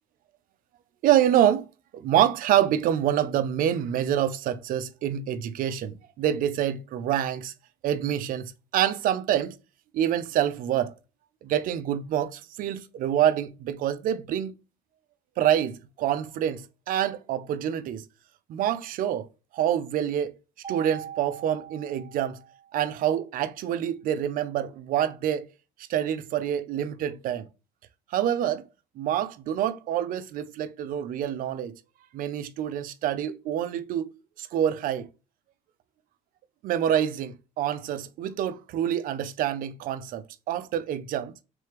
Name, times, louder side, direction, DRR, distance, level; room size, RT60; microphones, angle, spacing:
voice 1, 1.0-1.7 1.9-7.5 7.8-9.6 9.9-10.9 11.4-14.5 15.4-18.0 18.5-19.3 19.5-20.3 20.7-22.4 22.7-25.5 25.9-27.5 28.1-28.6 29.0-31.7 32.1-34.1 34.4-35.1 36.6-41.3, right 10 dB, 55° right, 0.5 m, -26 dB
Mallet percussion, 20.6-22.9, right 9 dB, 25° right, 0.7 m, -41 dB
3.3 x 3.2 x 3.3 m
cardioid pair, 120°, 17 cm